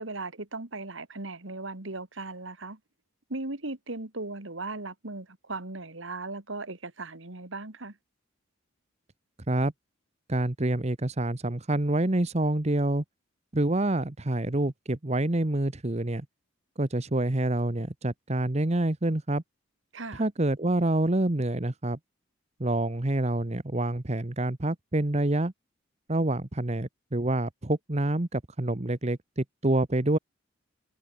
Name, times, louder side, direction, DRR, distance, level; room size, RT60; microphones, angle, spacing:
voice 1, 0.0-2.8 3.3-7.9 19.9-20.2, right 2 dB, 65° right, 2.1 m, -37 dB
voice 2, 10.3-13.0 13.5-16.2 16.8-19.4 20.2-22.0 22.6-25.5 26.1-30.2, right 1 dB, 30° right, 1.1 m, -27 dB
head